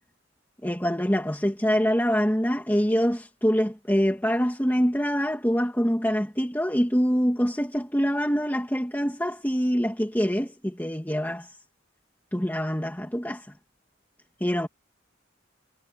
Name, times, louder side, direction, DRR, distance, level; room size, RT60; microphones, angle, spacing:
voice 1, 0.6-11.5 12.3-13.5 14.4-14.7, equal, 10° left, 2.5 m, -25 dB
head